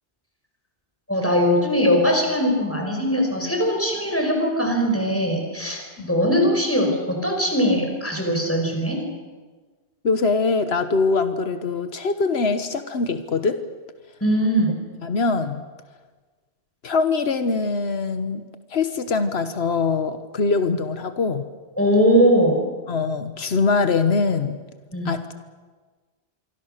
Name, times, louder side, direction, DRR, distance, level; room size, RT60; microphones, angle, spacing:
voice 1, 1.1-9.0 14.2-14.8 21.8-22.6 24.9-25.1, equal, 15° left, 2 dB, 5.1 m, -20 dB
voice 2, 10.0-13.6 15.0-15.6 16.8-18.4 18.7-21.5 22.9-24.6 25.0-25.3, left 4 dB, 90° left, 9 dB, 1.5 m, -23 dB
27.0 x 24.0 x 6.7 m, 1.4 s
omnidirectional pair, 1.0 m